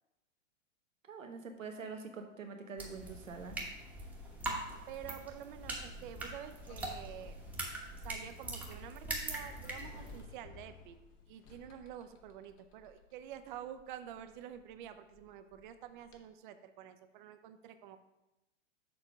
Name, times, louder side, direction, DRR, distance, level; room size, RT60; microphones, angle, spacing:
voice 1, 1.0-3.6, right 5 dB, 85° right, 4 dB, 1.2 m, -45 dB
sound 1, 2.8-10.2, right 1 dB, 5° right, 1.1 m, -42 dB
voice 2, 4.9-7.4 8.0-11.0 11.3-18.0, right 10 dB, 40° right, 10 dB, 0.6 m, -48 dB
Sliding door, 5.6-16.2, left 5 dB, 30° left, 1.0 m, -58 dB
6.8 x 3.9 x 6.0 m, 0.98 s
hypercardioid pair, 115°, 38 cm